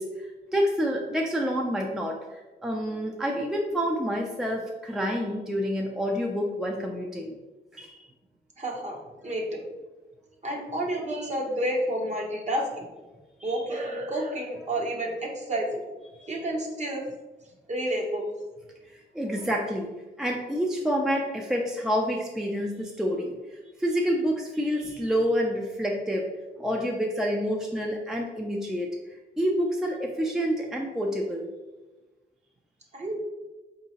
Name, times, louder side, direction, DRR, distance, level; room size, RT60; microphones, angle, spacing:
voice 1, 0.0-7.4 16.2-16.3 19.1-19.9 20.2-23.4 23.8-26.2 26.6-28.9 29.4-31.5, equal, 5° right, 0 dB, 0.5 m, -28 dB
voice 2, 8.6-9.6 10.4-12.9 13.4-15.8 16.3-17.0 17.7-18.3 32.9-33.2, right 1 dB, 40° right, 0 dB, 0.9 m, -30 dB
4.5 x 2.8 x 2.9 m, 1.2 s
cardioid pair, 75°, 18 cm